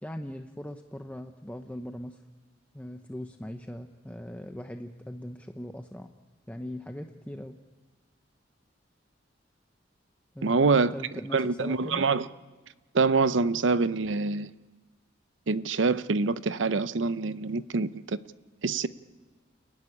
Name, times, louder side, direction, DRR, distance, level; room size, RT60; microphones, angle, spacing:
voice 1, 0.0-2.2 2.7-6.1 6.5-7.6 10.3-12.1, equal, 10° left, 0.7 m, -40 dB
voice 2, 10.4-10.9 11.3-12.3 12.9-14.5 15.5-18.2 18.6-18.9, right 4 dB, 85° right, 0.7 m, -25 dB
29.5 x 15.0 x 9.9 m
head